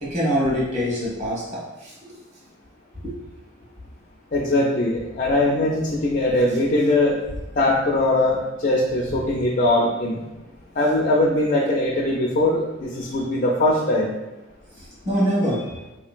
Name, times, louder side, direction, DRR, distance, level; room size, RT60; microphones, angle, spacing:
voice 1, 0.0-1.9 3.0-3.1 14.8-15.7, equal, 35° right, -7 dB, 1.2 m, -24 dB
voice 2, 4.3-7.2 7.6-10.2 10.8-14.1, left 1 dB, 40° left, -2 dB, 0.4 m, -21 dB
3.8 x 2.9 x 2.4 m, 1.1 s
head